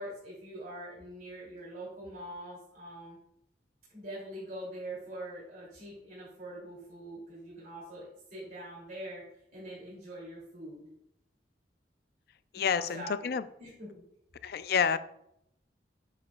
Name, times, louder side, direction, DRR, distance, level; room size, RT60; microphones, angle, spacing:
voice 1, 0.0-3.2 3.9-9.2 9.5-10.8 12.5-13.1 13.6-14.0, right 1 dB, 50° right, -7 dB, 2.9 m, -43 dB
voice 2, 12.5-13.4 14.4-15.0, left 7 dB, 55° left, 13 dB, 0.4 m, -28 dB
9.6 x 6.9 x 2.4 m, 0.77 s
head